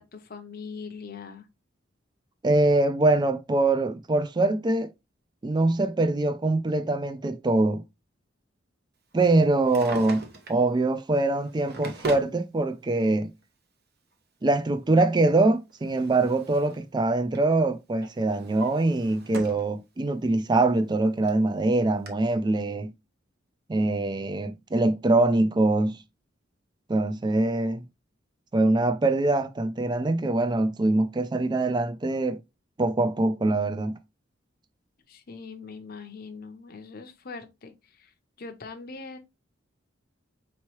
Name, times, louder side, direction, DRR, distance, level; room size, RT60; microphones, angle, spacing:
voice 1, 0.0-1.5 35.1-38.1 38.4-39.2, left 4 dB, 50° left, 0.7 m, -41 dB
voice 2, 2.4-4.9 5.4-7.8 9.1-13.3 14.4-22.9 23.7-26.0 26.9-27.8 28.5-32.4 32.8-34.0, right 2 dB, 25° right, 0.4 m, -23 dB
Drawer open or close, 9.5-10.7 11.4-12.3 13.4-13.5 15.3-16.8 17.1-17.5 18.0-19.7 20.1-20.2 20.9-21.0 21.3-21.4 22.1-22.2, right 3 dB, 60° right, 0.9 m, -39 dB
4.5 x 3.1 x 3.0 m
head